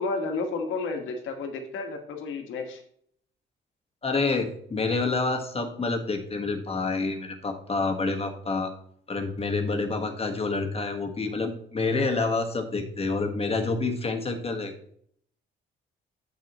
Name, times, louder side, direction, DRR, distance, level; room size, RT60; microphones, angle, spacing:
voice 1, 0.0-2.8, left 3 dB, 80° left, 4 dB, 1.5 m, -31 dB
voice 2, 4.0-8.7 9.1-14.7, left 3 dB, 30° left, 4 dB, 1.5 m, -28 dB
8.5 x 7.9 x 3.0 m, 0.66 s
cardioid pair, 90°, 20 cm